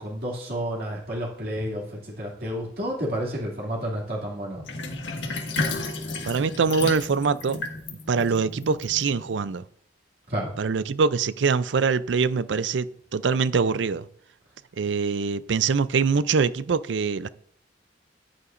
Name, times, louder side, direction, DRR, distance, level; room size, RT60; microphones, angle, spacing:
voice 1, 0.0-4.6 10.3-10.6, equal, 55° right, 2.6 m, -30 dB
Sink (filling or washing), 4.7-9.4, left 3 dB, 80° left, 1.6 m, -32 dB
voice 2, 6.2-7.6 8.1-9.6 10.6-14.1 14.8-17.3, right 5 dB, 80° right, 0.5 m, -24 dB
13.0 x 9.7 x 2.6 m
head